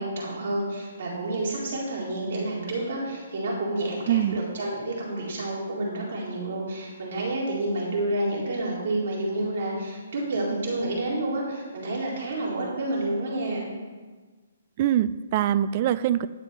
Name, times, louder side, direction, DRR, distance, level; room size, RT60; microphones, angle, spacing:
voice 1, 0.0-13.6, right 2 dB, 55° right, -4 dB, 3.9 m, -29 dB
voice 2, 4.1-4.4 14.8-16.3, right 11 dB, 30° right, 16 dB, 0.4 m, -23 dB
11.0 x 7.0 x 5.9 m, 1.4 s
hypercardioid pair, 165°, 0 cm